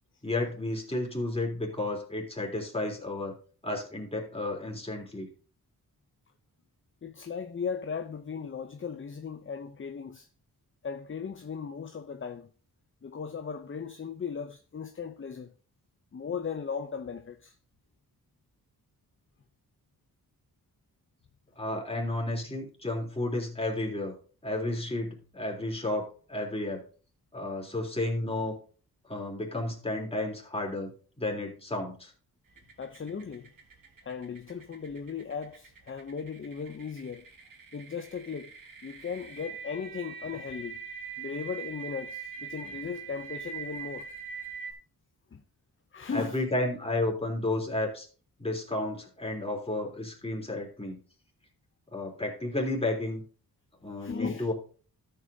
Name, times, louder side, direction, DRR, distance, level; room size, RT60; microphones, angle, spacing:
voice 1, 0.2-3.3 3.6-5.3 21.6-24.1 24.4-26.8 27.3-28.6 29.1-30.9 31.2-32.1 46.1-48.1 48.4-51.0 51.9-53.2 53.8-54.5, left 2 dB, 15° left, 3.4 m, -32 dB
voice 2, 7.0-10.3 10.8-12.5 13.0-15.5 16.1-17.5 32.8-33.5 34.0-37.3 37.7-38.5 38.8-40.8 41.2-44.1 45.3-45.4 45.9-46.4 54.0-54.5, left 6 dB, 35° left, 0.7 m, -37 dB
sound 1, 32.6-44.7, right 6 dB, 60° right, 1.9 m, -43 dB
13.5 x 8.0 x 2.8 m
wide cardioid pair, 120°, 37 cm